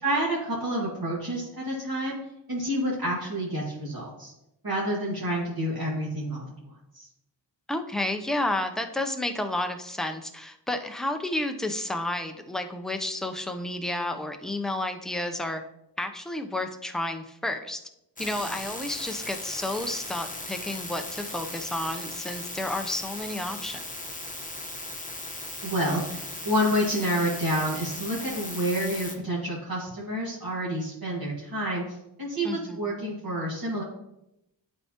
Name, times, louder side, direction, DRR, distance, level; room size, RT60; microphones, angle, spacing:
voice 1, 0.0-2.2 2.5-4.3 4.6-7.1 25.6-31.8 32.2-33.8, equal, 50° right, -7 dB, 2.0 m, -29 dB
voice 2, 7.7-15.6 16.0-17.8 18.2-23.8 32.4-32.8, left 1 dB, ahead, 5 dB, 0.6 m, -31 dB
sound 1, 18.2-29.2, left 2 dB, 15° left, 1.0 m, -38 dB
11.5 x 4.4 x 2.9 m, 0.86 s
wide cardioid pair, 75°, 46 cm